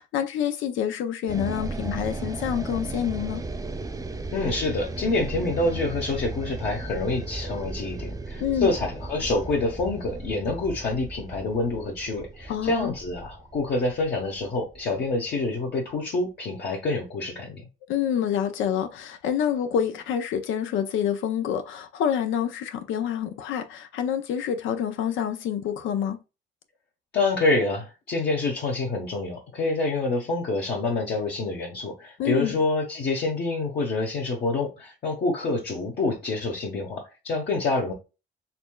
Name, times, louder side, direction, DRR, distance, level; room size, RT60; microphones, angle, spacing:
voice 1, 0.0-3.5 8.4-8.7 12.5-12.9 17.9-26.2 32.2-32.5, left 9 dB, 80° left, 0.5 m, -27 dB
sound 1, 1.3-15.5, right 2 dB, 15° right, 0.6 m, -36 dB
voice 2, 4.3-17.6 27.1-37.9, left 3 dB, 55° left, 1.2 m, -27 dB
4.2 x 3.1 x 2.2 m
cardioid pair, 90°, 20 cm